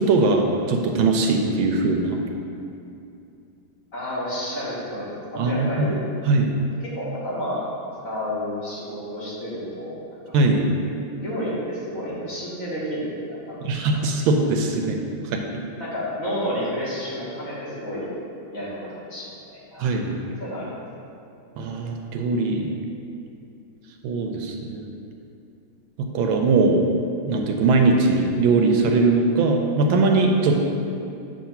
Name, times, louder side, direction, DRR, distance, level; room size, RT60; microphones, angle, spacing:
voice 1, 0.0-2.2 5.4-5.9 6.3-6.5 10.3-10.7 13.6-15.0 15.2-15.4 19.8-20.2 21.6-22.7 24.0-24.9 26.0-26.9 27.3-30.5, right 3 dB, 80° right, 3 dB, 1.3 m, -20 dB
voice 2, 3.9-6.0 6.8-7.7 8.0-10.0 10.3-10.4 11.2-13.6 15.8-18.1 18.5-19.9 20.4-20.7, equal, 45° left, -8 dB, 1.5 m, -30 dB
7.3 x 2.9 x 5.7 m, 2.6 s
omnidirectional pair, 2.3 m